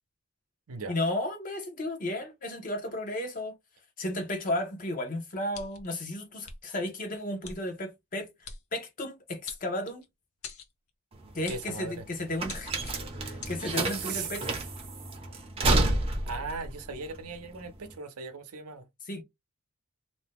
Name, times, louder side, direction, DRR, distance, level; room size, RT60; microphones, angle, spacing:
voice 1, 0.9-3.6 4.0-8.3 8.7-10.0 11.3-14.6 19.1-19.2, left 1 dB, 35° left, 0.7 m, -34 dB
sound 1, 5.5-5.9 6.4-6.6 7.4-7.6 8.4-8.6 9.5-10.1 10.4-10.7 11.5-11.7 12.4-12.9 13.4-13.6, left 5 dB, 70° left, 0.7 m, -43 dB
sound 2, 11.1-17.9, right 2 dB, 25° right, 0.6 m, -30 dB
voice 2, 11.5-12.0 14.0-14.3 16.3-18.9, right 4 dB, 80° right, 0.7 m, -38 dB
2.6 x 2.2 x 3.5 m
head